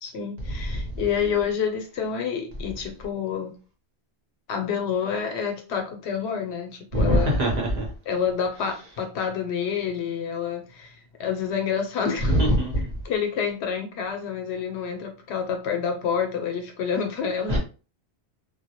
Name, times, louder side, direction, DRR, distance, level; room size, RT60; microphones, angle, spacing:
voice 1, 0.0-3.5 4.5-7.4 8.1-10.9 11.2-12.4 13.0-17.6, left 7 dB, 80° left, 0.9 m, -28 dB
voice 2, 6.9-7.9 12.2-12.9 17.5-17.6, equal, 45° right, 0.8 m, -22 dB
2.2 x 2.0 x 2.8 m
omnidirectional pair, 1.1 m